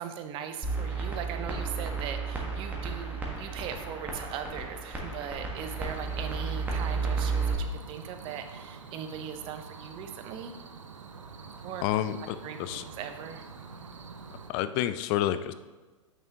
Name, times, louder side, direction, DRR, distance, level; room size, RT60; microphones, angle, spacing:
voice 1, 0.0-10.5 11.6-11.8 12.4-13.5, right 8 dB, 30° right, 8 dB, 0.7 m, -39 dB
sound 1, 0.6-7.5, right 4 dB, 10° right, 1.4 m, -33 dB
sound 2, 5.5-14.5, right 5 dB, 75° right, 0.7 m, -46 dB
voice 2, 11.8-12.8 14.5-15.5, left 12 dB, 35° left, 12 dB, 0.4 m, -29 dB
8.8 x 6.1 x 2.8 m, 1.2 s
figure-of-eight pair, 100°, 17 cm